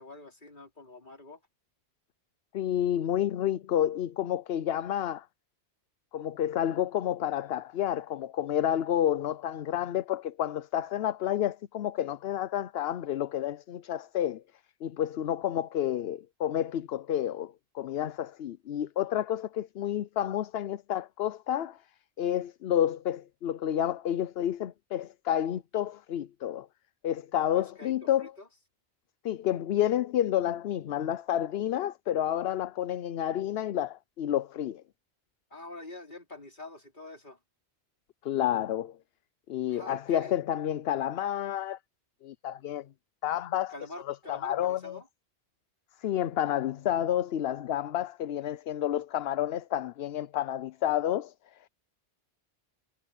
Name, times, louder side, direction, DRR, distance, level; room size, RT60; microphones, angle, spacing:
voice 1, 0.0-1.4 27.5-28.5 35.5-37.4 39.7-40.4 43.7-45.1, left 2 dB, 45° left, 4.0 m, -46 dB
voice 2, 2.5-5.3 6.1-14.4 14.8-21.8 22.2-26.7 27.0-28.3 29.2-34.8 38.2-39.0 39.5-41.8 42.2-42.9 43.2-43.7 44.1-45.0 46.0-51.3, left 11 dB, 70° left, 0.8 m, -30 dB
omnidirectional pair, 1.1 m